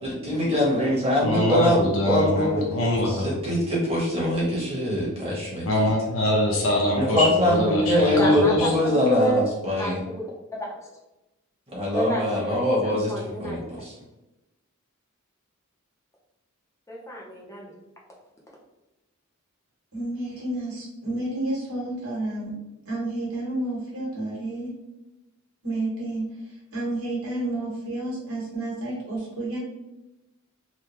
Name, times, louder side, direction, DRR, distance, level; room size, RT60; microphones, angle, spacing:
voice 1, 0.0-2.6 3.0-5.6 7.0-10.0 11.7-13.1 13.4-13.9, left 1 dB, 30° right, -5 dB, 1.3 m, -23 dB
voice 2, 1.2-3.5 5.7-8.7, left 1 dB, 65° left, -1 dB, 0.5 m, -24 dB
voice 3, 8.2-9.4 9.8-10.3 10.5-10.9 11.9-13.6 16.9-17.7, equal, 15° left, -3 dB, 0.6 m, -29 dB
voice 4, 19.9-22.5 22.9-24.7 25.6-26.3 26.7-29.6, right 2 dB, 85° right, -5 dB, 1.5 m, -30 dB
3.5 x 2.2 x 2.9 m, 0.97 s
head